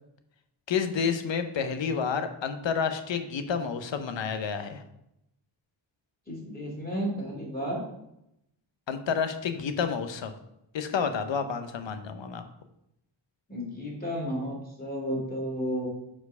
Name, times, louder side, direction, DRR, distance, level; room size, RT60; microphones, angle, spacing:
voice 1, 0.7-4.8 8.9-10.3 10.7-12.4, left 6 dB, 65° left, 8 dB, 0.8 m, -29 dB
voice 2, 6.3-7.8 13.5-15.9, equal, 20° left, -4 dB, 2.4 m, -32 dB
4.7 x 4.5 x 5.4 m, 0.82 s
wide cardioid pair, 90°, 47 cm